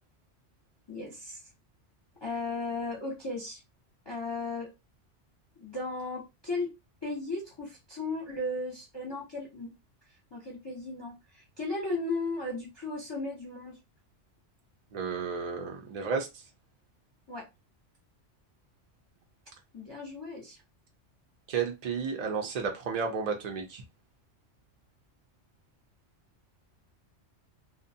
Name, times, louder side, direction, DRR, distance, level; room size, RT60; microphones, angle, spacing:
voice 1, 0.9-1.4 2.2-3.6 4.1-4.7 5.6-6.7 7.0-9.7 10.3-13.8 17.3-17.4 19.7-20.6, left 2 dB, 30° left, 0.5 m, -35 dB
voice 2, 14.9-16.4 21.5-23.8, right 5 dB, 60° right, 0.4 m, -32 dB
2.5 x 2.1 x 2.6 m
omnidirectional pair, 1.2 m